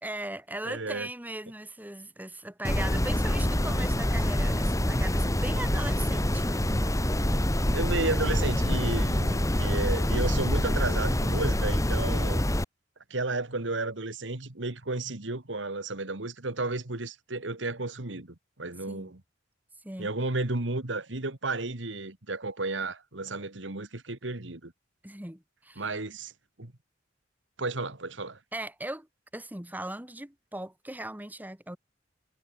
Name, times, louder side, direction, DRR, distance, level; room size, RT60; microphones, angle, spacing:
voice 1, 0.0-6.7 18.9-19.1 19.8-20.1 25.0-25.9 28.5-29.1 29.3-31.8, right 1 dB, 10° right, 2.5 m, -38 dB
voice 2, 0.6-1.1 7.7-12.4 13.1-19.2 20.0-24.7 25.8-26.3 26.6-26.7 27.6-28.4, right 2 dB, 85° right, 2.2 m, -33 dB
sound 1, 2.6-12.6, left 1 dB, 20° left, 2.1 m, -26 dB
head